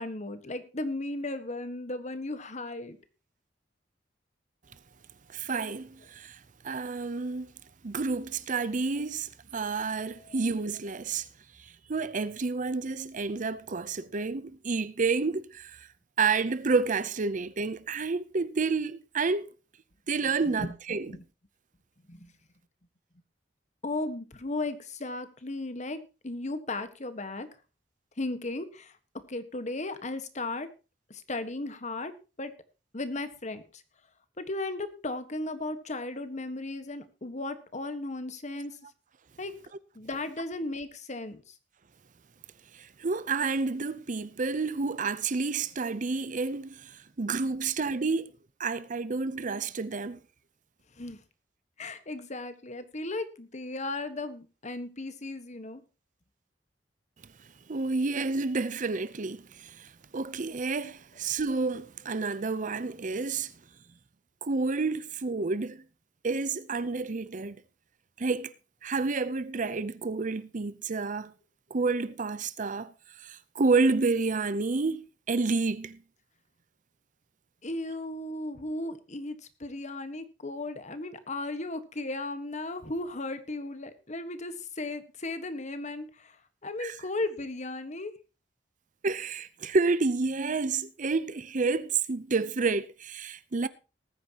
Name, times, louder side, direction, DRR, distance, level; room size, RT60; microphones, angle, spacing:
voice 1, 0.0-3.0 10.2-10.4 20.4-20.7 21.1-21.2 22.1-22.3 23.8-26.0 26.2-27.5 28.2-28.9 29.3-30.7 31.1-32.1 32.4-32.5 32.9-33.8 34.4-38.8 39.4-39.5 39.9-41.6 51.0-51.2 51.8-55.8 77.6-88.1, left 2 dB, 40° left, 1.5 m, -36 dB
voice 2, 5.3-7.5 7.8-11.3 11.6-15.9 16.2-19.5 20.1-21.1 42.7-48.3 48.6-50.2 57.7-63.5 64.4-65.8 66.2-67.6 68.2-68.5 68.8-71.3 71.7-76.0 86.8-87.0 89.0-93.7, right 4 dB, 45° right, 0.7 m, -30 dB
19.0 x 9.7 x 2.9 m
head